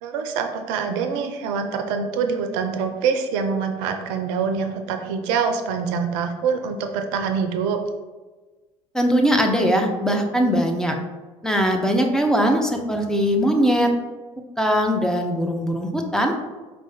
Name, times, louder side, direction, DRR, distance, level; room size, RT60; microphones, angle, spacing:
voice 1, 0.0-7.8, right 6 dB, 60° right, 6 dB, 0.5 m, -25 dB
voice 2, 8.9-11.0 11.4-13.9 14.6-16.3, equal, 5° left, 2 dB, 0.6 m, -20 dB
4.5 x 2.2 x 4.2 m, 1.2 s
figure-of-eight pair, 65°, 17 cm